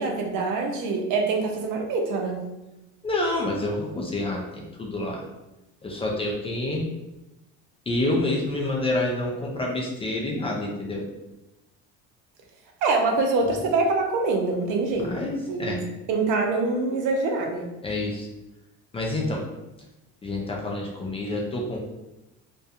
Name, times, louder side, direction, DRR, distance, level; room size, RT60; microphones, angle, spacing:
voice 1, 0.0-2.4 12.8-15.1 15.5-15.8 16.1-17.7, right 3 dB, 70° right, 2 dB, 0.6 m, -24 dB
voice 2, 3.0-5.2 5.8-6.9 7.9-11.1 15.0-15.8 17.8-18.3 18.9-19.5 20.2-21.8, left 2 dB, 20° left, -2 dB, 0.3 m, -28 dB
2.3 x 2.2 x 2.7 m, 0.99 s
cardioid pair, 125°, 31 cm